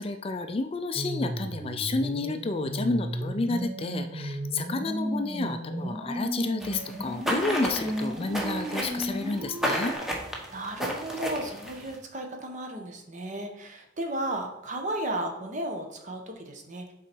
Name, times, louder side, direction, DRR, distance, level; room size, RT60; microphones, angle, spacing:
voice 1, 0.0-9.9, left 3 dB, 30° left, 9 dB, 0.4 m, -30 dB
sound 1, 1.0-10.0, right 1 dB, 20° right, 0.7 m, -34 dB
sound 2, 6.6-11.9, equal, ahead, 1.0 m, -32 dB
voice 2, 10.5-16.9, right 1 dB, 40° right, 3 dB, 1.0 m, -34 dB
7.3 x 4.0 x 4.5 m, 0.88 s
head